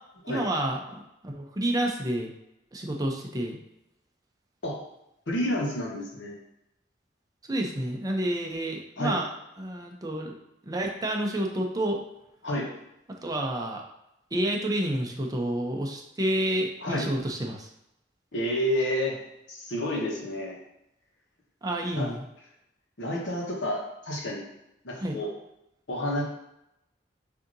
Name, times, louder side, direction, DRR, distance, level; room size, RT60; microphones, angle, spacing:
voice 1, 0.3-2.3 2.7-3.6 7.5-9.2 9.6-10.3 10.6-12.0 13.2-13.8 14.3-17.7 21.6-22.2 24.9-25.2, right 1 dB, 20° right, 1 dB, 0.6 m, -29 dB
voice 2, 5.3-6.4 9.0-9.2 12.4-12.7 16.8-17.1 18.3-19.2 19.5-20.6 21.9-22.1 23.0-24.5 24.8-25.3 25.9-26.2, left 1 dB, 80° left, -2 dB, 1.1 m, -29 dB
6.2 x 2.8 x 2.6 m, 0.85 s
head